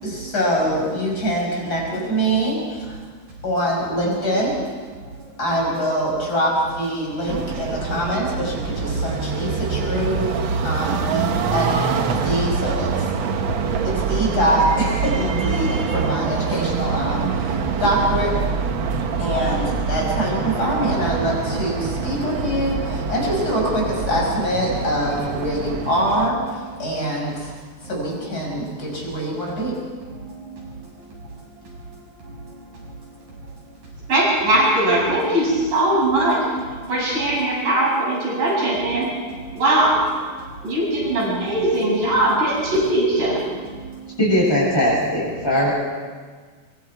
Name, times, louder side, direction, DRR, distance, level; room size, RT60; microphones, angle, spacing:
voice 1, 0.0-3.0 3.4-4.5 5.4-10.3 10.6-11.8 12.2-13.1 13.8-18.4 19.2-27.5 27.8-29.8 43.5-43.6, equal, 25° left, -2 dB, 6.0 m, -24 dB
sound 1, 7.3-26.3, right 5 dB, 80° right, 1.1 m, -25 dB
voice 2, 34.1-36.4 36.9-39.1 39.6-39.9 40.6-43.4, right 1 dB, 65° right, -4 dB, 9.3 m, -20 dB
voice 3, 44.2-45.8, equal, 5° left, -7 dB, 7.7 m, -19 dB
24.5 x 24.0 x 4.8 m, 1.5 s
omnidirectional pair, 4.1 m